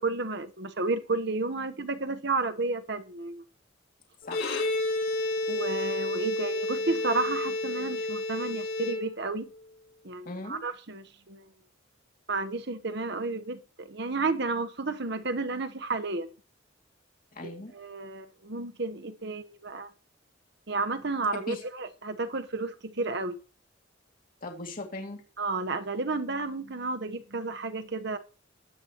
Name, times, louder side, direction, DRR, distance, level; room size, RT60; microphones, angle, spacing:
voice 1, 0.0-3.4 5.5-9.5 10.0-11.5 12.3-16.3 17.4-19.9 20.7-23.4 25.4-28.2, right 3 dB, 60° right, 1.1 m, -32 dB
Bowed string instrument, 4.2-9.5, left 2 dB, 80° left, 4.6 m, -30 dB
voice 2, 4.2-4.5 10.2-10.6 17.3-17.7 21.3-21.6 24.4-25.2, left 2 dB, 45° left, 2.5 m, -39 dB
20.5 x 8.7 x 3.1 m
head